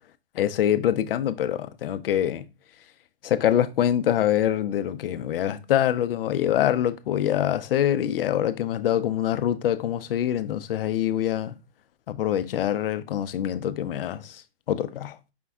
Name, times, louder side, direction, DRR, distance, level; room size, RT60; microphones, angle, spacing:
voice 1, 0.3-2.4 3.2-11.5 12.1-14.4 14.7-15.2, left 11 dB, 60° left, 0.5 m, -25 dB
5.2 x 3.5 x 2.2 m
hypercardioid pair, 170°, 32 cm